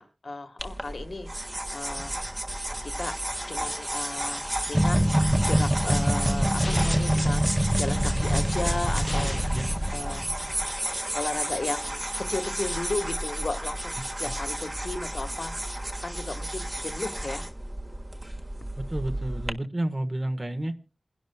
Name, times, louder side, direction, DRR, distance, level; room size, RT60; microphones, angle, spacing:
voice 1, 0.0-2.2 2.8-3.1 3.5-5.1 5.4-9.5 9.9-10.3 11.1-15.6 16.0-17.5, left 3 dB, 75° left, 7 dB, 1.4 m, -35 dB
sound 1, 0.6-19.5, right 1 dB, 25° right, 1.6 m, -33 dB
sound 2, 4.7-10.6, equal, 10° right, 1.0 m, -25 dB
sound 3, 6.6-7.2 9.1-9.7, left 1 dB, 30° left, 1.2 m, -35 dB
voice 2, 14.0-14.3 18.8-20.8, right 1 dB, 40° right, 9 dB, 1.4 m, -31 dB
28.5 x 11.5 x 2.2 m, 0.32 s
wide cardioid pair, 65°, 0 cm